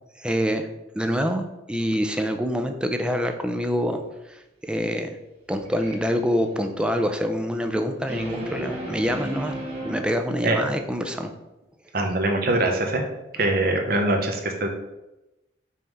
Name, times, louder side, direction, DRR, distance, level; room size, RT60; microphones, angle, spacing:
voice 1, 0.2-0.7 0.9-4.0 4.3-5.1 5.5-9.5 9.8-11.3, equal, 5° right, 5 dB, 0.5 m, -26 dB
sound 1, 5.6-6.0 8.0-10.0, right 1 dB, 30° right, 1.8 m, -33 dB
voice 2, 11.9-13.0 13.4-14.7, right 2 dB, 55° right, 2 dB, 1.0 m, -23 dB
5.6 x 3.2 x 5.3 m, 0.97 s
head